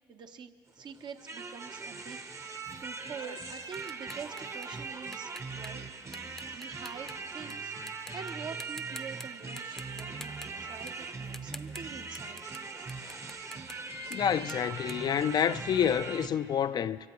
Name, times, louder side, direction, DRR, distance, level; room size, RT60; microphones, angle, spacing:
voice 1, 0.0-2.2 2.8-5.9 6.2-10.4 10.6-12.6, right 6 dB, 55° right, 0.9 m, -46 dB
sound 1, 0.7-16.3, right 4 dB, 35° right, 1.0 m, -40 dB
sound 2, 2.7-7.5 7.9-8.3 8.6-9.3 9.6-15.9, left 1 dB, 5° left, 0.7 m, -49 dB
voice 2, 14.1-17.0, left 8 dB, 50° left, 0.4 m, -28 dB
23.0 x 17.0 x 3.1 m
hypercardioid pair, 60°, 9 cm